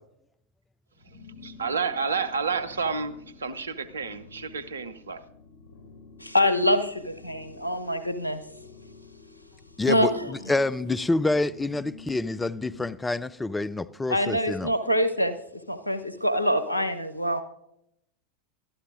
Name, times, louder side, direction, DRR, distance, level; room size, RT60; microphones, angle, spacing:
sound 1, 0.9-12.9, left 4 dB, 55° left, 3.0 m, -49 dB
voice 1, 1.4-5.2, right 5 dB, 75° right, 0.7 m, -30 dB
voice 2, 6.2-8.4 9.9-10.3 14.1-15.4 15.7-17.4, equal, 90° left, 0.9 m, -25 dB
voice 3, 9.8-14.7, left 2 dB, 10° left, 0.4 m, -27 dB
22.5 x 12.5 x 2.5 m
figure-of-eight pair, 85°, 0 cm